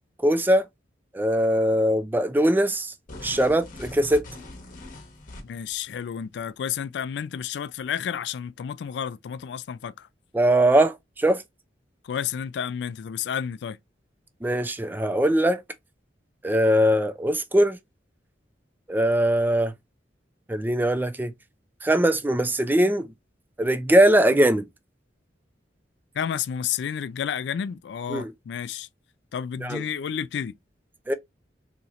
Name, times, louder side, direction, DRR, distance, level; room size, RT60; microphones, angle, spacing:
voice 1, 0.2-0.6 1.1-2.9 3.2-4.3 10.3-11.4 14.4-15.6 16.4-17.8 18.9-19.7 20.5-21.3 21.8-23.1 23.6-24.7 28.1-28.3 29.6-29.8 31.1-31.2, right 1 dB, 10° right, 0.4 m, -21 dB
sound 1, 3.1-5.7, left 2 dB, 50° left, 1.1 m, -41 dB
voice 2, 5.4-10.1 12.0-13.8 26.1-28.9 29.3-30.6, left 8 dB, 70° left, 0.3 m, -31 dB
4.1 x 2.9 x 2.4 m
head